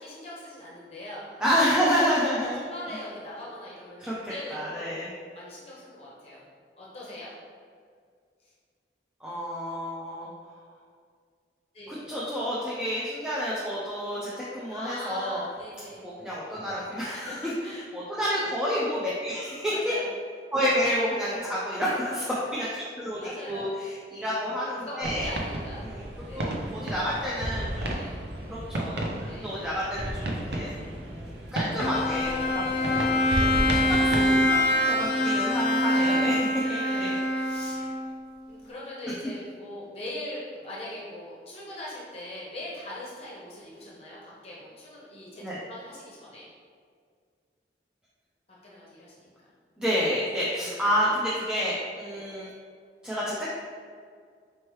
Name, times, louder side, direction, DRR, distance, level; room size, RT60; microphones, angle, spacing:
voice 1, 0.0-1.4 1.9-2.1 2.6-5.1 5.3-6.4 6.8-7.3 8.4-8.5 11.7-12.1 14.7-16.1 17.1-17.8 19.7-20.1 20.6-20.7 21.2-22.2 23.2-23.8 24.8-25.9 26.2-26.6 27.9-28.2 29.2-29.6 32.0-32.5 35.9-36.2 36.8-37.8 38.5-46.5 48.6-49.3 50.5-51.1 52.1-52.2, left 1 dB, 35° left, -6 dB, 0.8 m, -41 dB
voice 2, 1.4-2.7 4.0-5.1 9.2-10.3 11.9-15.4 16.0-17.5 17.9-19.9 20.5-22.2 22.5-23.2 23.5-25.3 25.8-26.0 26.3-28.0 28.5-30.7 31.0-33.1 33.6-37.1 45.4-45.6 49.8-52.5 53.0-53.5, equal, 5° right, -8 dB, 0.4 m, -29 dB
sound 1, 25.0-34.4, right 1 dB, 75° right, 0.5 m, -32 dB
Bowed string instrument, 31.8-38.2, left 1 dB, 55° left, 0.5 m, -25 dB
4.4 x 3.0 x 3.0 m, 2.1 s
head